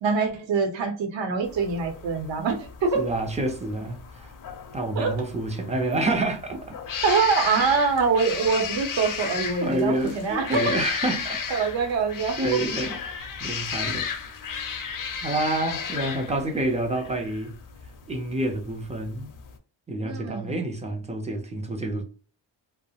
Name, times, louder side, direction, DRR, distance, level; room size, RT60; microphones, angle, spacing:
voice 1, 0.0-3.0 5.0-5.1 7.0-10.8 11.5-12.4 20.0-20.5, right 5 dB, 70° right, 0.7 m, -24 dB
sound 1, 1.4-19.6, left 6 dB, 45° left, 0.5 m, -35 dB
voice 2, 2.9-4.3 4.7-6.8 9.6-11.4 12.4-14.1 15.2-17.5 18.1-19.3 19.9-22.0, right 2 dB, 15° right, 0.3 m, -28 dB
2.6 x 2.0 x 2.7 m
wide cardioid pair, 180°, 46 cm